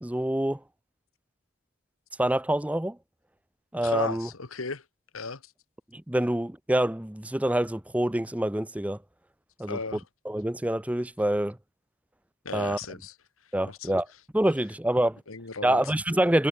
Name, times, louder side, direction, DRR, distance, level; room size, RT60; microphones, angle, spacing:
voice 1, 0.0-0.6 2.2-3.0 3.7-4.3 5.9-9.0 9.6-9.8 10.2-11.6 12.5-12.8 13.5-14.1 14.3-15.2 15.6-16.5, right 1 dB, 5° right, 0.6 m, -26 dB
voice 2, 3.8-4.8 5.1-5.4 9.7-10.0 12.4-13.1 13.6-14.0 15.3-15.8, left 4 dB, 85° left, 1.7 m, -35 dB
head